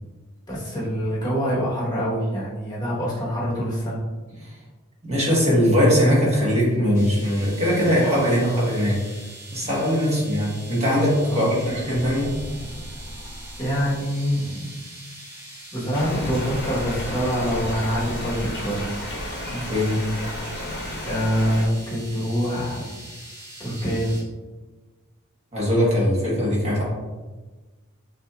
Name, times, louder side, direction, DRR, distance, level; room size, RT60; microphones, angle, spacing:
voice 1, 0.5-4.0 10.0-10.1 11.3-11.5 13.6-14.7 15.7-18.9 21.0-22.9 23.6-24.2, equal, 20° left, -6 dB, 1.2 m, -25 dB
voice 2, 5.0-9.0 9.5-12.4 19.4-20.0 25.5-26.8, equal, 30° right, -6 dB, 1.3 m, -21 dB
sound 1, 6.9-24.2, right 1 dB, 10° right, 0.7 m, -43 dB
sound 2, 11.6-14.1 16.1-18.6, left 1 dB, 85° left, 0.9 m, -38 dB
sound 3, 15.9-21.7, left 1 dB, 50° left, 1.0 m, -33 dB
6.2 x 2.8 x 2.4 m, 1.3 s
head